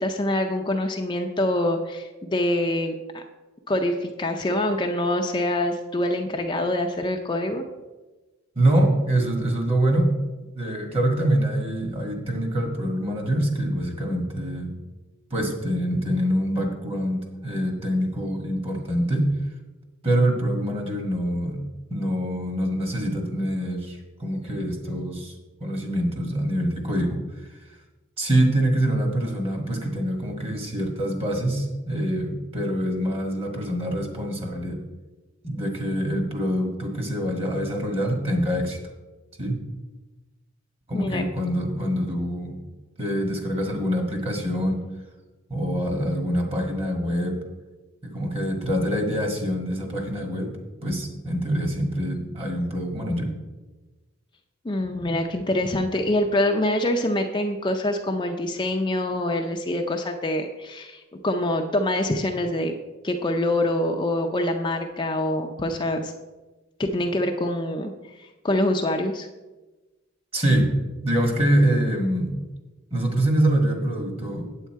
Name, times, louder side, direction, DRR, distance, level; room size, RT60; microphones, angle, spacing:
voice 1, 0.0-3.2 3.7-7.6 40.9-41.2 54.6-62.7 63.0-66.1 66.8-67.9 68.2-69.3, left 1 dB, 20° left, 3 dB, 0.5 m, -25 dB
voice 2, 8.5-10.1 10.5-14.8 15.3-19.3 20.0-21.6 21.9-25.3 25.6-27.2 28.2-34.8 35.4-38.8 39.4-39.6 40.9-42.6 43.0-44.8 45.5-47.4 48.0-50.5 50.8-53.3 70.3-70.7 71.0-72.4 72.9-74.5, right 1 dB, 30° right, 2 dB, 1.7 m, -25 dB
8.3 x 8.1 x 4.5 m, 1.2 s
head